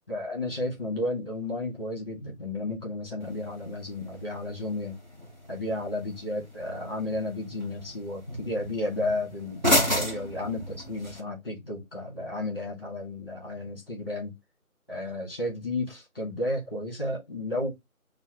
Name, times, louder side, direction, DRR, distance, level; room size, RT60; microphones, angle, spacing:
voice 1, 0.1-5.0 5.5-14.3 14.9-17.7, left 2 dB, 15° left, 1.5 m, -32 dB
sound 1, 3.2-11.2, equal, 30° right, 1.1 m, -33 dB
6.8 x 2.3 x 2.9 m
figure-of-eight pair, 170°, 44 cm